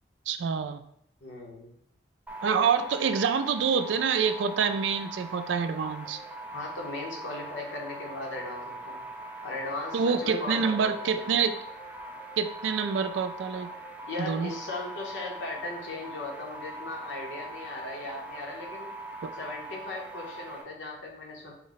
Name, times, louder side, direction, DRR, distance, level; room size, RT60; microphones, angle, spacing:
voice 1, 0.3-0.8 2.4-6.2 9.9-11.6 12.4-13.7 14.2-14.5 19.2-19.3, right 6 dB, 85° right, 10 dB, 0.3 m, -27 dB
voice 2, 1.2-1.7 6.5-9.0 9.4-11.2 14.1-18.9 19.3-21.5, left 2 dB, 85° left, -1 dB, 1.0 m, -37 dB
sound 1, 2.3-20.6, right 1 dB, 10° right, 0.3 m, -42 dB
4.4 x 2.1 x 3.9 m, 0.70 s
head